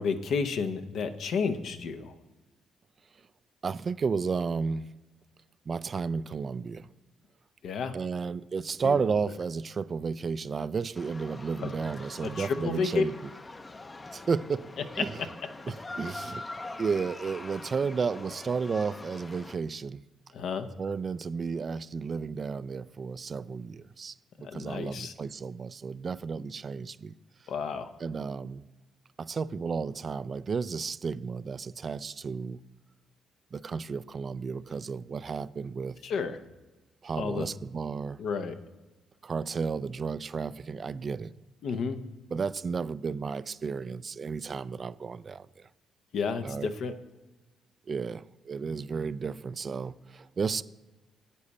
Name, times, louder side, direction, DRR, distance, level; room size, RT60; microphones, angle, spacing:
voice 1, 0.0-2.2 7.6-7.9 8.8-9.0 11.6-11.7 12.2-13.0 15.2-15.3 16.2-16.3 20.3-20.7 24.4-25.1 27.5-27.9 36.0-36.4 37.1-37.5 38.2-38.6 41.6-42.0 46.1-46.9, left 5 dB, 70° left, 0.8 m, -31 dB
voice 2, 3.6-4.9 5.7-6.9 7.9-13.1 14.1-14.7 15.0-15.1 15.7-16.4 16.8-20.0 20.8-27.1 28.0-28.6 29.2-32.6 33.5-36.0 37.0-38.2 39.2-41.4 42.3-45.6 46.4-46.7 47.9-50.6, right 5 dB, 40° right, 0.3 m, -32 dB
sound 1, 10.9-19.6, left 2 dB, 25° left, 0.6 m, -43 dB
9.9 x 8.7 x 4.2 m
cardioid pair, 90°, 0 cm